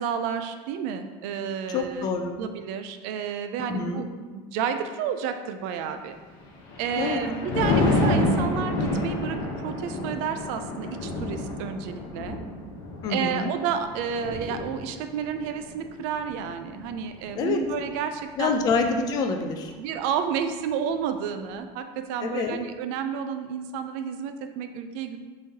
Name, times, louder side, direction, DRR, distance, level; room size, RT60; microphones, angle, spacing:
voice 1, 0.0-2.1 2.4-4.0 4.3-6.2 6.8-12.4 13.1-18.6 19.8-25.2, right 7 dB, 65° right, 8 dB, 0.4 m, -31 dB
voice 2, 1.7-2.3 3.6-4.1 7.0-7.2 13.0-13.5 17.3-17.6 18.4-19.7 22.2-22.6, left 4 dB, 30° left, 4 dB, 0.4 m, -26 dB
Thunder, 6.4-17.9 18.3-18.7, left 2 dB, 70° left, 1.0 m, -29 dB
5.5 x 3.1 x 2.8 m, 1.3 s
cardioid pair, 180°, 13 cm